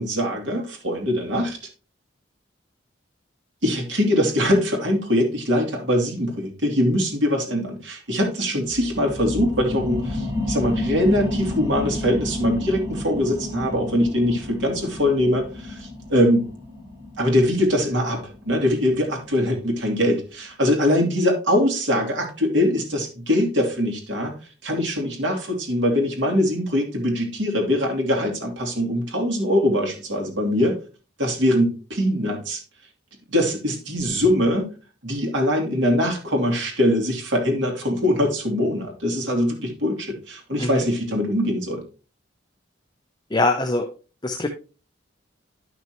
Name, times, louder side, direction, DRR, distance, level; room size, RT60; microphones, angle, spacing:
voice 1, 0.0-1.6 3.6-16.5 17.2-24.3 24.6-30.8 31.2-32.6 33.3-34.7 35.0-41.8, left 1 dB, 75° right, 1 dB, 2.7 m, -22 dB
sound 1, 8.6-19.8 20.2-20.3, left 2 dB, 15° right, 2.0 m, -31 dB
voice 2, 43.3-43.9 44.2-44.5, left 2 dB, 20° left, 5 dB, 0.7 m, -22 dB
11.0 x 6.1 x 3.0 m, 0.33 s
head